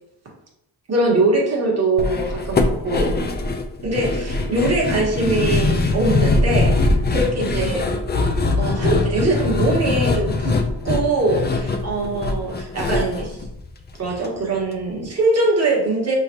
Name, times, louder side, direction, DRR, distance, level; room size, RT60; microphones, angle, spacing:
voice 1, 0.9-3.1 3.8-6.7 7.1-7.8 8.6-10.6 10.8-13.4 14.0-16.2, right 2 dB, 40° right, -3 dB, 1.5 m, -22 dB
sound 1, 2.0-14.3 14.5-14.6 15.0-15.1, left 3 dB, 25° left, 0.4 m, -22 dB
5.6 x 3.3 x 2.8 m, 0.85 s
wide cardioid pair, 145°, 40 cm